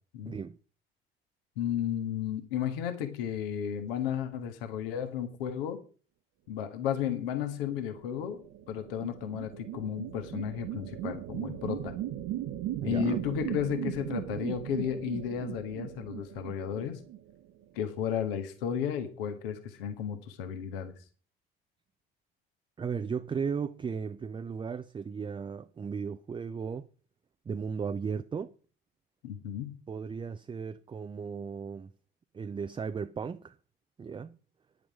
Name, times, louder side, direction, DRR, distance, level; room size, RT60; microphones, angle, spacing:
voice 1, 0.3-0.6 12.8-13.2 22.8-26.9 27.5-28.5 29.9-31.9 32.3-33.6 34.0-34.4, right 6 dB, 15° right, 0.5 m, -35 dB
voice 2, 1.6-5.8 6.5-8.4 8.7-11.9 12.8-17.0 17.7-20.9 29.2-29.8, left 9 dB, 65° left, 1.6 m, -33 dB
sound 1, 7.9-17.6, right 13 dB, 50° right, 1.0 m, -38 dB
10.0 x 9.0 x 4.9 m
figure-of-eight pair, 55°, 31 cm